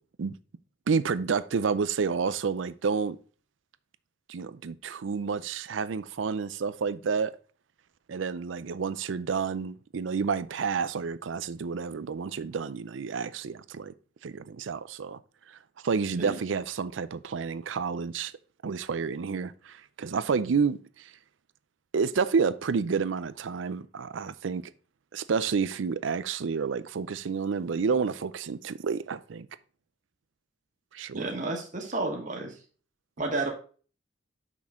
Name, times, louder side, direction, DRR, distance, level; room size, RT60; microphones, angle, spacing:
voice 1, 0.9-3.2 4.3-7.3 8.1-13.9 14.2-15.2 15.8-18.3 18.6-21.1 21.9-24.6 25.1-29.5 30.9-31.3, right 5 dB, 90° right, 0.5 m, -29 dB
voice 2, 31.1-32.5 33.2-33.5, right 2 dB, 40° right, 1.5 m, -31 dB
6.3 x 6.1 x 3.5 m
head